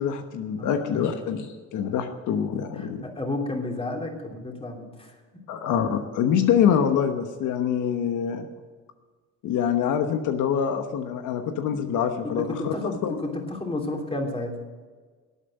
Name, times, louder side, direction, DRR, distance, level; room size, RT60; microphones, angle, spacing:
voice 1, 0.0-3.0 5.5-8.5 9.4-13.2, left 8 dB, 85° left, 6 dB, 1.1 m, -25 dB
voice 2, 0.6-1.0 2.8-5.1 12.2-14.6, left 2 dB, 20° left, 1 dB, 3.0 m, -31 dB
12.5 x 8.9 x 8.7 m, 1.5 s
cardioid pair, 90°, 30 cm